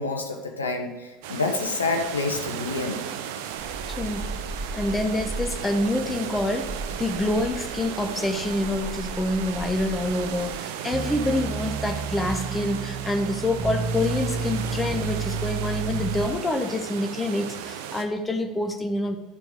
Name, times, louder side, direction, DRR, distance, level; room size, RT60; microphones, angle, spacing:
voice 1, 0.0-3.0, left 3 dB, 80° left, 3 dB, 0.9 m, -28 dB
sound 1, 1.2-18.0, right 9 dB, 60° right, 0.7 m, -35 dB
sound 2, 3.6-10.6, right 2 dB, 10° right, 2.2 m, -37 dB
voice 2, 3.9-4.3 4.7-19.2, left 1 dB, 15° left, 4 dB, 1.1 m, -27 dB
sound 3, 10.9-16.3, right 4 dB, 30° right, 1.2 m, -30 dB
11.5 x 4.5 x 5.3 m, 1.3 s
figure-of-eight pair, 75°, 0 cm